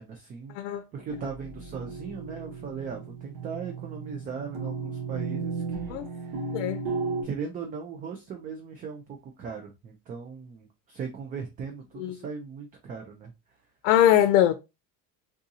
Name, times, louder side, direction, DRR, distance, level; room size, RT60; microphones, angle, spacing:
voice 1, 0.0-6.5 7.2-13.3, right 6 dB, 25° right, 0.4 m, -38 dB
sound 1, 1.0-7.2, right 4 dB, 90° right, 1.5 m, -35 dB
voice 2, 6.5-6.8 12.0-12.1 13.8-14.5, left 11 dB, 80° left, 0.6 m, -21 dB
3.6 x 2.7 x 2.6 m
cardioid pair, 145°, 37 cm